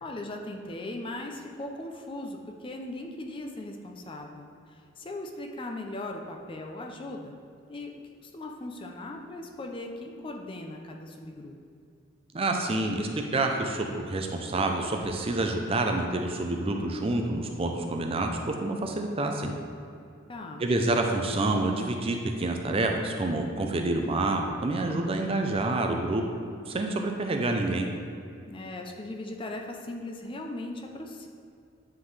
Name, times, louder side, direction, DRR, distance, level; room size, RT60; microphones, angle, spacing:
voice 1, 0.0-7.4 7.7-8.0 8.2-11.5 20.3-20.6 28.5-31.3, left 2 dB, 25° left, 2 dB, 0.4 m, -38 dB
voice 2, 12.3-19.5 20.6-26.2 26.7-27.9, right 2 dB, 30° right, 3 dB, 0.5 m, -28 dB
9.4 x 3.7 x 3.3 m, 2.5 s
head